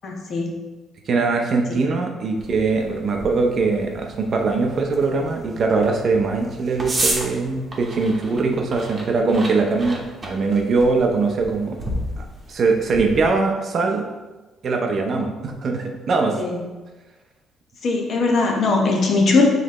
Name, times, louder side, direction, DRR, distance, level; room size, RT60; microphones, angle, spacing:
voice 1, 0.0-0.6 1.7-1.8 16.4-16.6 17.8-19.4, left 3 dB, 55° left, 1 dB, 0.9 m, -20 dB
voice 2, 1.1-11.7 12.2-14.0 14.6-16.4, right 4 dB, 50° right, 3 dB, 0.6 m, -21 dB
sound 1, 2.4-13.3, right 1 dB, 30° right, 1.0 m, -33 dB
5.2 x 3.3 x 3.0 m, 1.2 s
cardioid pair, 85°, 0 cm